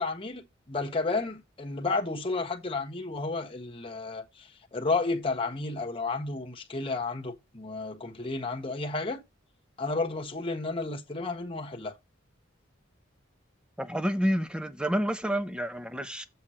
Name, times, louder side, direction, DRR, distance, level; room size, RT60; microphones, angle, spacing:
voice 1, 0.0-9.2 9.8-11.9, left 3 dB, 25° left, 1.3 m, -32 dB
voice 2, 13.8-16.3, equal, 5° right, 0.7 m, -29 dB
7.5 x 6.2 x 4.3 m
head